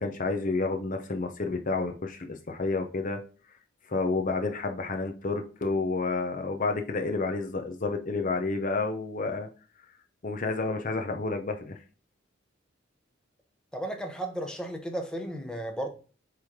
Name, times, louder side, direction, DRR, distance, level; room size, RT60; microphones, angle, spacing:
voice 1, 0.0-3.2 3.9-9.5 10.2-11.8, left 3 dB, 40° left, 0.7 m, -30 dB
voice 2, 13.7-15.9, right 1 dB, 5° left, 0.8 m, -34 dB
8.0 x 3.2 x 3.6 m
head